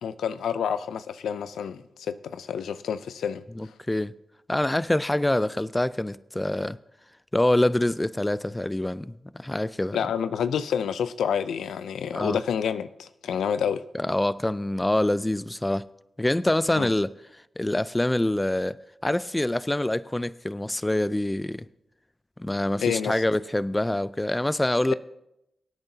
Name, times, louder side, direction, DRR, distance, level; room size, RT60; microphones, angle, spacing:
voice 1, 0.0-3.4 9.9-13.8 16.8-16.9 22.8-23.2 24.9-25.0, left 7 dB, 85° left, 0.5 m, -28 dB
voice 2, 3.6-4.1 4.5-6.8 7.3-9.1 9.4-10.0 12.1-12.4 13.9-15.8 16.2-17.1 17.6-18.8 19.0-21.7 22.4-24.9, left 1 dB, 15° left, 0.4 m, -25 dB
23.0 x 8.8 x 2.8 m
cardioid pair, 45°, 0 cm